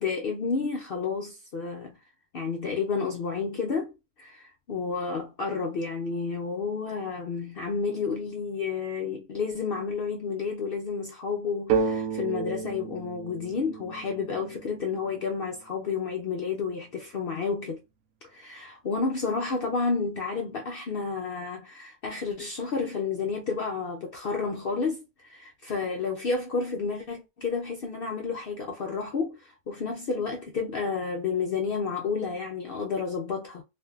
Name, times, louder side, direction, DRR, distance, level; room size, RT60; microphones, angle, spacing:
voice 1, 0.0-2.0 2.3-17.8 18.2-33.6, left 5 dB, 75° left, 0.5 m, -31 dB
sound 1, 11.7-15.4, right 5 dB, 75° right, 1.0 m, -31 dB
2.6 x 2.5 x 2.3 m
omnidirectional pair, 1.5 m